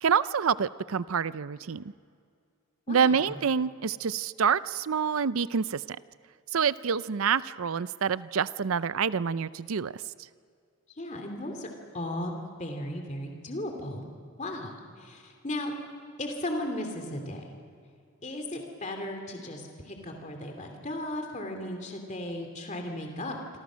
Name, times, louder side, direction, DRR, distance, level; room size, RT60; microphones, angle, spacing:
voice 1, 0.0-1.9 2.9-6.0 6.5-10.0, right 6 dB, 75° right, 16 dB, 0.5 m, -27 dB
voice 2, 2.9-3.3 11.0-12.3 12.6-14.0 14.4-14.7 15.0-15.7 16.2-17.4 18.2-23.4, left 1 dB, 35° left, 4 dB, 2.9 m, -36 dB
26.5 x 26.5 x 6.4 m, 2.2 s
head